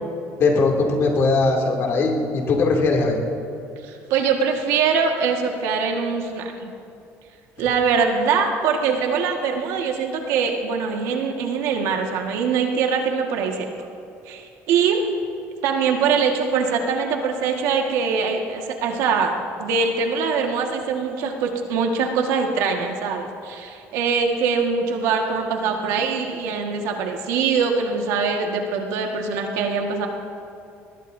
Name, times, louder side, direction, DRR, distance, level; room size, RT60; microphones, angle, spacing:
voice 1, 0.4-3.2, left 3 dB, 50° left, 0 dB, 2.7 m, -20 dB
voice 2, 3.8-6.7 7.6-13.7 14.3-15.0 15.6-30.1, right 5 dB, 85° right, 2 dB, 1.7 m, -23 dB
21.5 x 19.5 x 2.7 m, 2.6 s
cardioid pair, 140°, 5 cm